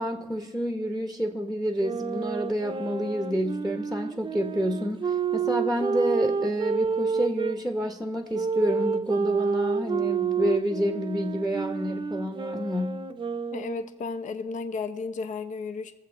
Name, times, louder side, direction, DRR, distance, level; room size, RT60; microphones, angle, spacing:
voice 1, 0.0-13.0, equal, ahead, 5 dB, 1.0 m, -29 dB
sound 1, 1.8-7.6 8.3-13.9, right 5 dB, 30° right, 0.7 m, -29 dB
voice 2, 13.5-15.9, left 4 dB, 50° left, 9 dB, 0.9 m, -33 dB
22.0 x 7.6 x 3.9 m, 1.1 s
cardioid pair, 110°, 17 cm